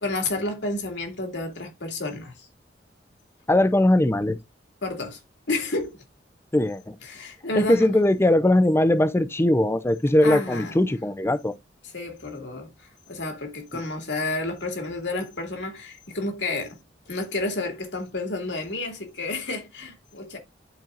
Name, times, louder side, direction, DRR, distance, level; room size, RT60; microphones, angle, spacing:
voice 1, 0.0-2.5 4.8-5.2 5.5-6.0 7.0-7.9 10.2-10.9 11.8-12.7 13.1-16.8 17.1-20.4, left 2 dB, 70° left, 2.3 m, -30 dB
voice 2, 3.5-4.4 6.5-6.9 7.6-11.5, left 1 dB, 15° left, 0.5 m, -20 dB
12.0 x 4.4 x 2.5 m
head